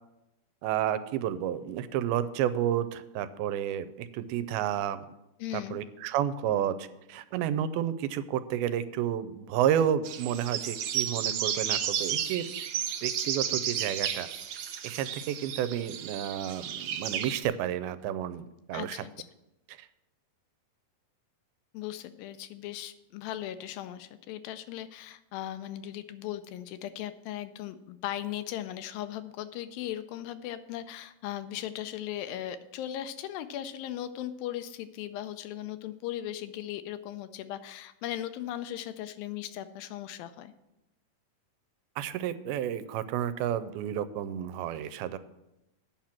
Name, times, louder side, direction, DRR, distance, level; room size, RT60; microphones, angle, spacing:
voice 1, 0.6-5.1 5.5-12.5 13.0-14.3 14.8-18.4 18.7-19.0 19.8-19.9 42.0-45.2, right 10 dB, 85° right, 13 dB, 2.5 m, -31 dB
voice 2, 5.4-5.8 18.7-19.1 21.7-40.5, left 12 dB, 80° left, 11 dB, 2.2 m, -38 dB
sound 1, 10.0-17.4, right 9 dB, 70° right, 1.9 m, -33 dB
8.9 x 5.8 x 7.5 m, 0.92 s
omnidirectional pair, 4.3 m